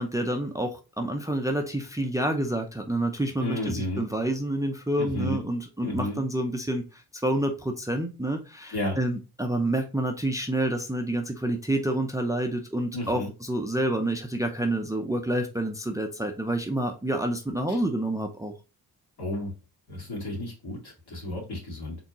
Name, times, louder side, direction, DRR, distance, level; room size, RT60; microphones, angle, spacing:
voice 1, 0.0-18.5, right 1 dB, 10° right, 4 dB, 0.5 m, -28 dB
voice 2, 3.4-4.1 5.0-5.4 5.8-6.2 8.7-9.0 12.9-13.3 17.7-17.8 19.2-19.5 19.9-22.0, left 1 dB, 65° left, -2 dB, 2.4 m, -32 dB
4.2 x 3.7 x 2.9 m, 0.30 s
cardioid pair, 90°, 41 cm